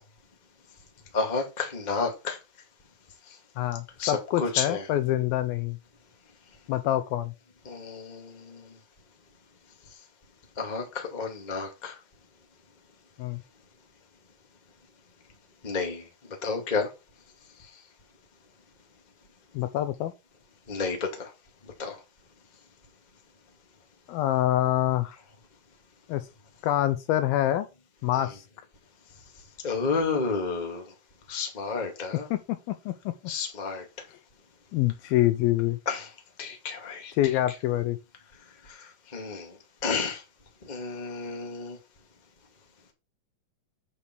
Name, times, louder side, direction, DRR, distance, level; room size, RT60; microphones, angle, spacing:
voice 1, 1.1-2.4 4.0-4.1 4.4-4.8 7.6-8.7 10.6-12.0 15.6-16.1 16.4-16.9 20.7-21.3 21.8-22.0 28.1-28.2 29.6-30.8 31.3-32.3 33.3-33.8 35.8-36.1 36.4-37.1 38.6-39.6 39.8-40.2 40.6-41.8, left 4 dB, 20° left, 1.1 m, -31 dB
voice 2, 3.6-5.8 6.7-7.3 13.2-13.4 19.5-20.1 24.1-25.2 26.1-26.3 26.6-27.7 28.0-28.4 32.3-33.1 34.7-35.8 37.2-38.0, left 14 dB, 80° left, 2.3 m, -26 dB
8.4 x 5.1 x 6.1 m
omnidirectional pair, 4.6 m